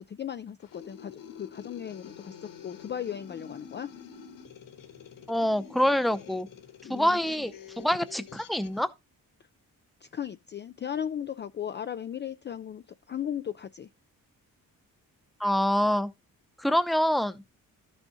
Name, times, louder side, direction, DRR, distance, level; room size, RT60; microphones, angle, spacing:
voice 1, 0.0-3.9 6.8-7.2 10.0-13.9, left 9 dB, 35° left, 0.4 m, -36 dB
sound 1, 0.6-8.8, left 7 dB, 70° left, 1.8 m, -48 dB
voice 2, 5.3-6.5 6.9-8.9 15.4-16.1 16.6-17.4, equal, ahead, 0.7 m, -26 dB
13.5 x 6.3 x 2.6 m
wide cardioid pair, 140°, 34 cm